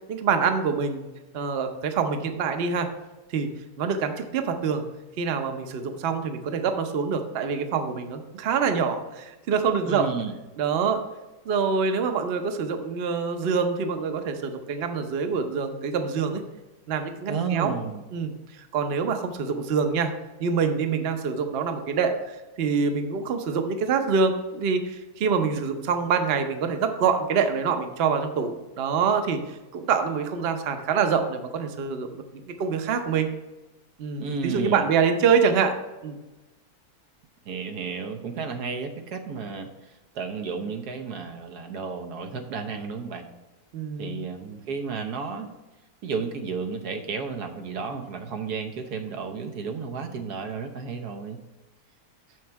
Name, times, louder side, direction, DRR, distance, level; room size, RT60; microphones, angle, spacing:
voice 1, 0.1-1.1 1.3-2.9 3.3-3.5 3.8-4.8 5.2-10.1 10.6-11.0 11.5-16.4 16.9-17.7 18.1-20.1 20.4-29.4 29.7-33.3 34.0-35.7 36.0-36.2 43.7-44.2, right 6 dB, 50° right, 6 dB, 0.8 m, -25 dB
voice 2, 9.8-10.3 17.3-18.0 34.2-34.9 37.4-43.3 44.0-45.5 46.0-51.4, right 5 dB, 85° right, 5 dB, 1.4 m, -32 dB
7.0 x 6.4 x 4.5 m, 1.1 s
omnidirectional pair, 1.6 m